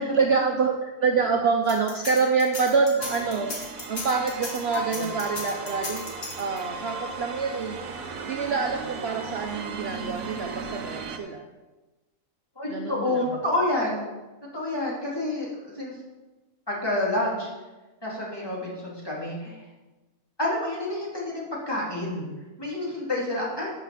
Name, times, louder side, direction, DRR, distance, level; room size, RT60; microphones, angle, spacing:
voice 1, 0.0-6.1 6.4-7.8 8.3-11.4 12.7-13.3, right 5 dB, 50° right, 2 dB, 0.9 m, -26 dB
sound 1, 1.7-6.8, left 2 dB, 50° left, 2.2 m, -36 dB
sound 2, 3.0-11.2, right 4 dB, 70° right, 1.3 m, -36 dB
voice 2, 4.7-5.0 12.6-14.1 14.5-16.0 16.7-17.5 18.0-19.6 20.4-22.3 22.6-23.7, left 1 dB, 15° left, -5 dB, 2.9 m, -28 dB
12.0 x 7.0 x 4.2 m, 1.1 s
omnidirectional pair, 1.5 m